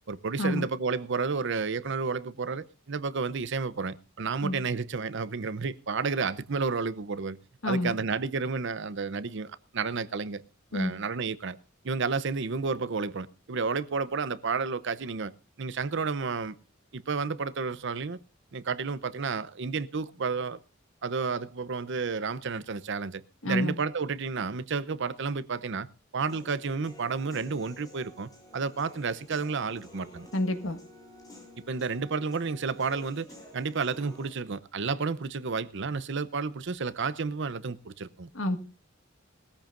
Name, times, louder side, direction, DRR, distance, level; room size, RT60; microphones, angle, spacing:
voice 1, 0.1-7.4 7.6-10.4 10.7-11.6 11.8-15.3 15.6-16.6 16.9-18.2 18.5-20.6 21.0-25.9 26.1-30.3 31.7-33.3 33.5-38.3, right 4 dB, 65° right, 0.7 m, -31 dB
voice 2, 7.6-7.9 10.7-10.9 23.4-23.8 30.3-30.8 38.3-38.6, left 1 dB, 75° left, 1.6 m, -28 dB
Human voice / Piano, 26.3-34.3, equal, 20° left, 7.7 m, -51 dB
20.5 x 14.0 x 2.5 m
head